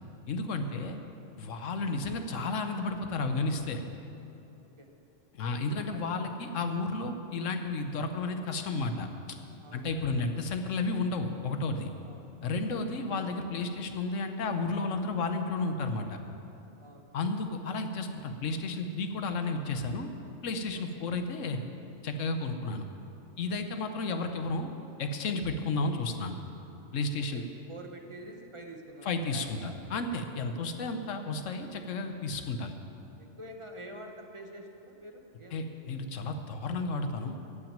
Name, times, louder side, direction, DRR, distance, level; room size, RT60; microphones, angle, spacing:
voice 1, 0.3-1.0 1.4-3.8 5.3-9.1 9.7-11.9 12.4-16.2 17.1-20.1 20.4-21.6 22.0-22.8 23.4-24.7 25.0-26.4 26.9-27.4 29.0-32.7 35.5-37.4, left 3 dB, 80° left, 6 dB, 1.2 m, -32 dB
voice 2, 4.6-4.9 5.9-6.0 9.6-10.1 12.0-12.8 16.8-17.1 20.7-21.2 23.7-23.8 27.1-29.8 30.4-30.5 33.2-35.6, right 1 dB, 25° right, 3 dB, 1.0 m, -48 dB
14.5 x 6.0 x 8.8 m, 2.8 s
omnidirectional pair, 1.3 m